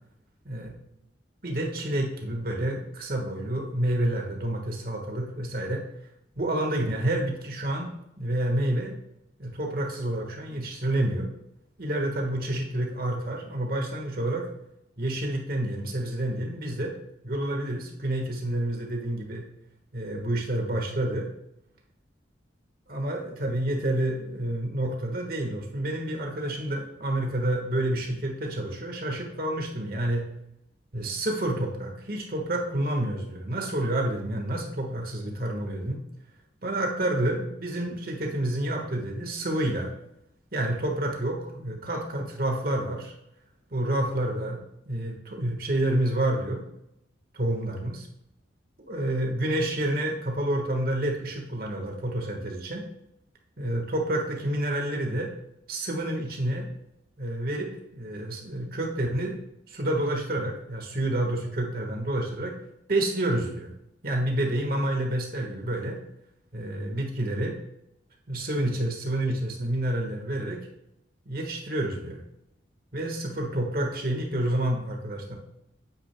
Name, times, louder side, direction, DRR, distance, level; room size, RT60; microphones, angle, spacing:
voice 1, 1.4-5.8 6.4-7.9 8.2-8.9 9.4-11.3 11.8-14.5 15.0-16.9 17.2-19.4 19.9-21.3 22.9-30.2 30.9-36.0 36.6-39.9 40.5-43.1 43.7-46.6 47.3-48.1 48.9-52.8 53.6-55.3 55.7-56.7 57.2-59.4 59.7-62.6 62.9-63.7 64.0-66.0 66.5-67.5 68.3-70.7 71.2-72.2 72.9-75.3, right 1 dB, 50° right, 1 dB, 1.4 m, -29 dB
9.0 x 8.8 x 2.2 m, 0.81 s
head